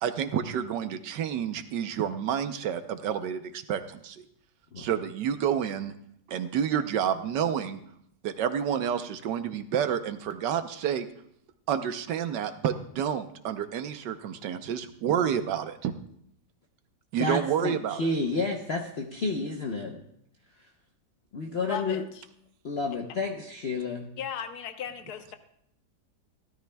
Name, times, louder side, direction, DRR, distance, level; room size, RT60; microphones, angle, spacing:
voice 1, 0.0-4.2 4.8-5.9 6.3-7.8 8.2-11.1 11.7-15.9 17.1-18.0, right 8 dB, 85° right, 9 dB, 1.4 m, -29 dB
voice 2, 17.2-20.0 21.3-22.0 22.6-24.1, left 3 dB, 45° left, 1 dB, 1.0 m, -30 dB
voice 3, 21.6-22.0 24.2-25.4, left 8 dB, 70° left, 8 dB, 1.4 m, -36 dB
17.0 x 12.5 x 2.3 m, 0.70 s
omnidirectional pair, 1.8 m